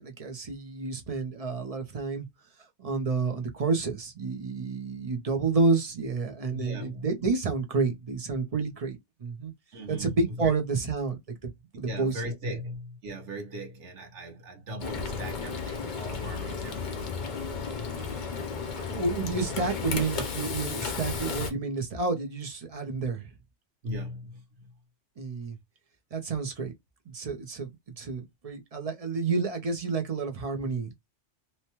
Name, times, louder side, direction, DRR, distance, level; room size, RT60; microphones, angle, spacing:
voice 1, 0.0-2.3 2.8-9.5 9.9-11.5 11.8-12.2 18.9-23.3 25.2-25.6 26.1-26.7 27.1-27.7 28.0-31.1, right 4 dB, 40° right, 0.7 m, -29 dB
voice 2, 6.5-7.0 9.7-10.5 11.8-17.0 17.3-17.5 18.1-18.3 23.8-24.4, equal, 85° right, 1.2 m, -39 dB
Frying (food), 14.8-21.5, left 5 dB, 50° left, 0.7 m, -33 dB
2.9 x 2.2 x 2.9 m
omnidirectional pair, 1.2 m